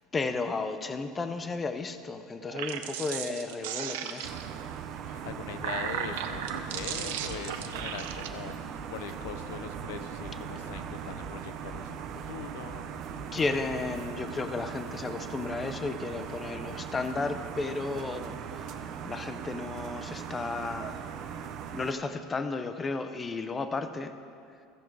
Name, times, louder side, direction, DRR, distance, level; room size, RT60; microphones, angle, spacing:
voice 1, 0.1-4.4 13.3-21.5 21.7-24.1, left 3 dB, 15° left, 9 dB, 0.5 m, -33 dB
sound 1, 2.4-4.6 5.3-8.3, right 9 dB, 90° right, 0.6 m, -36 dB
sound 2, 4.2-21.9, right 8 dB, 40° right, 0.5 m, -39 dB
voice 2, 5.0-12.9, left 9 dB, 75° left, 10 dB, 0.6 m, -42 dB
sound 3, 6.3-14.1, right 2 dB, 25° right, 1.3 m, -48 dB
15.0 x 6.0 x 4.6 m, 2.4 s
cardioid pair, 160°, 0 cm